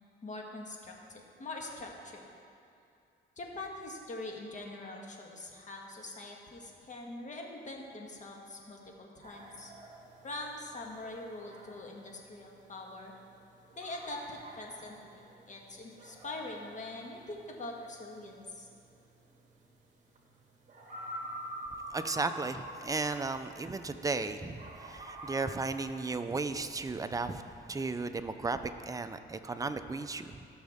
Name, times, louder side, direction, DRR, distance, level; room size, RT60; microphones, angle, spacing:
voice 1, 0.2-2.2 3.4-9.7 10.2-13.1 13.7-18.7, left 2 dB, 40° left, 0 dB, 1.6 m, -43 dB
sound 1, 9.2-24.2 24.5-25.4, right 1 dB, 40° right, 1.8 m, -47 dB
voice 2, 21.9-27.4 27.7-30.4, right 3 dB, 15° right, 9 dB, 0.5 m, -35 dB
15.5 x 6.4 x 3.6 m, 2.5 s
cardioid pair, 90°, 20 cm